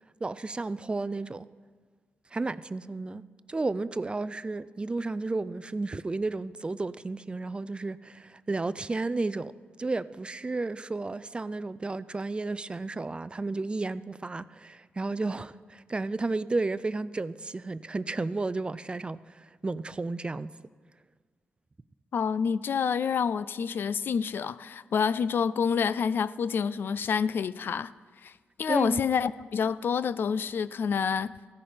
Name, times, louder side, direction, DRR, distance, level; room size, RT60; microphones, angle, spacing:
voice 1, 0.2-1.5 2.3-9.5 9.8-20.5 28.7-29.0, right 3 dB, 25° right, 0.4 m, -32 dB
voice 2, 22.1-27.9 28.2-28.3 28.6-31.3, left 6 dB, 65° left, 0.4 m, -28 dB
15.0 x 10.0 x 5.1 m
cardioid pair, 70°, 4 cm